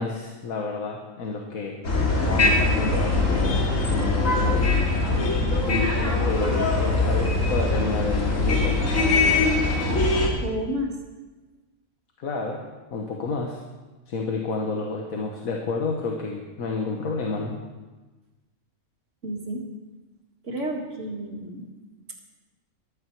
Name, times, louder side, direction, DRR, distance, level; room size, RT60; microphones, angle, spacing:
voice 1, 0.0-1.8 2.2-3.6 3.9-4.7 5.6-5.9 6.2-8.9 12.2-12.6 12.9-13.6 14.1-17.6, left 4 dB, 80° left, 1 dB, 1.6 m, -30 dB
sound 1, 1.8-10.3, left 2 dB, 65° left, 2.5 m, -22 dB
voice 2, 10.4-10.9 19.2-19.6 20.4-21.6, right 1 dB, 60° right, 0 dB, 2.2 m, -30 dB
14.5 x 12.0 x 4.6 m, 1.2 s
omnidirectional pair, 1.5 m